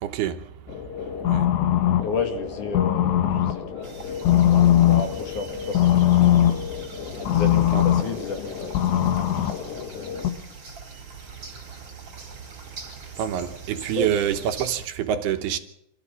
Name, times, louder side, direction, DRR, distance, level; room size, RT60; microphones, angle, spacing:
voice 1, 0.0-0.5 1.2-1.5 3.8-3.9 7.7-7.8 13.2-15.6, right 10 dB, 75° right, 2.9 m, -26 dB
sound 1, 0.7-10.3, left 11 dB, 85° left, 3.7 m, -22 dB
voice 2, 2.0-4.2 4.5-6.1 7.2-10.2 14.0-14.1, left 4 dB, 55° left, 3.0 m, -33 dB
sound 2, 3.8-14.9, right 4 dB, 25° right, 4.1 m, -42 dB
26.5 x 14.0 x 7.0 m
omnidirectional pair, 4.9 m